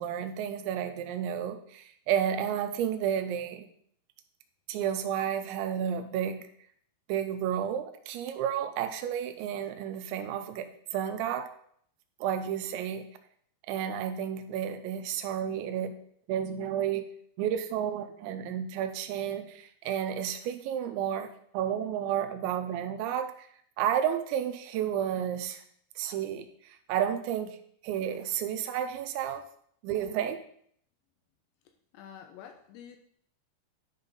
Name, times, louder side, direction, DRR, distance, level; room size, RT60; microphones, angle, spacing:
voice 1, 0.0-3.7 4.7-6.5 7.1-11.5 12.2-13.1 13.7-15.9 16.3-17.1 17.4-23.5 23.8-25.6 26.0-27.6 27.8-29.5 29.8-30.4, right 9 dB, 85° right, 8 dB, 2.8 m, -31 dB
voice 2, 31.9-33.0, left 8 dB, 80° left, 6 dB, 2.6 m, -48 dB
10.5 x 4.0 x 5.4 m, 0.63 s
omnidirectional pair, 5.4 m